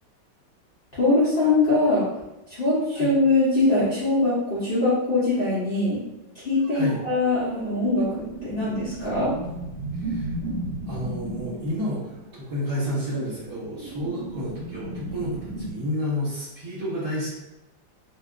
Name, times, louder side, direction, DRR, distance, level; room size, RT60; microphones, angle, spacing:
voice 1, 1.0-2.0 2.6-6.0 6.3-8.1 8.4-9.3, left 2 dB, 70° left, -12 dB, 0.5 m, -22 dB
Warped Whirly Gig, 6.6-15.7, right 2 dB, 75° right, 1.2 m, -35 dB
voice 2, 9.9-10.3 10.9-17.3, equal, 35° right, -9 dB, 1.0 m, -30 dB
2.8 x 2.6 x 2.4 m, 0.96 s
omnidirectional pair, 2.0 m